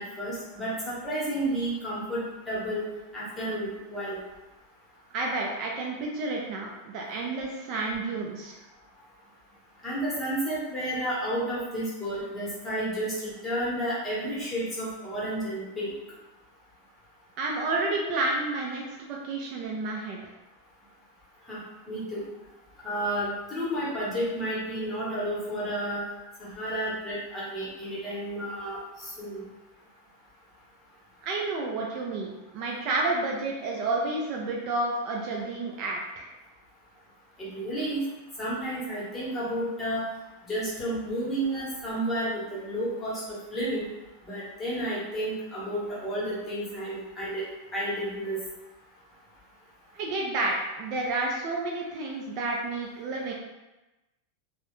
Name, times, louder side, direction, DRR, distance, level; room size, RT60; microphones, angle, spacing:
voice 1, 0.0-4.2 9.8-15.9 21.5-22.2 22.8-26.0 26.4-29.4 37.4-38.0 38.4-40.0 40.4-43.9 44.2-47.4 47.7-48.4, right 1 dB, 10° left, -8 dB, 0.9 m, -31 dB
voice 2, 5.1-8.6 17.4-20.2 31.2-36.3 49.9-53.3, right 2 dB, 40° right, -1 dB, 0.3 m, -30 dB
2.3 x 2.0 x 2.9 m, 1.0 s
supercardioid pair, 155°, 0 cm